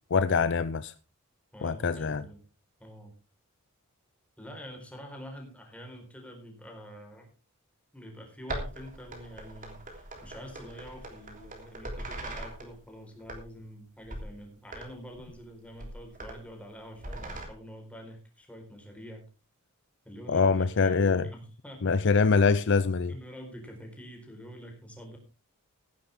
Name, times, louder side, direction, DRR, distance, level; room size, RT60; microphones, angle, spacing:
voice 1, 0.1-0.9 1.6-2.2 20.3-21.3 21.8-23.1, left 4 dB, 55° left, 0.5 m, -24 dB
voice 2, 1.5-2.4 2.8-3.1 4.4-7.3 7.9-19.2 20.0-22.0 23.1-25.2, equal, 5° left, 4.3 m, -46 dB
sound 1, 8.5-12.7 13.2-13.7 14.0-14.3 14.7-14.9 15.2-15.4 15.8-16.4 17.0-17.5, right 1 dB, 35° right, 3.4 m, -40 dB
15.5 x 11.5 x 3.6 m
head